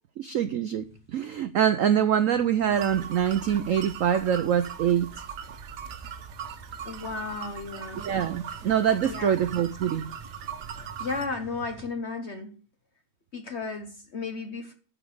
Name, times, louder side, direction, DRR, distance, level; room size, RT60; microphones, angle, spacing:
voice 1, 0.2-5.2 8.0-10.1, right 9 dB, 85° right, 0.7 m, -25 dB
sound 1, 0.8-1.5 1.8-11.9, right 2 dB, 30° left, 6.0 m, -49 dB
sound 2, 2.7-11.3, right 8 dB, 65° right, 1.4 m, -40 dB
voice 2, 6.8-8.1 9.1-9.3 11.0-12.6 13.3-14.7, left 4 dB, 55° left, 0.8 m, -34 dB
11.0 x 5.0 x 6.6 m
omnidirectional pair, 2.1 m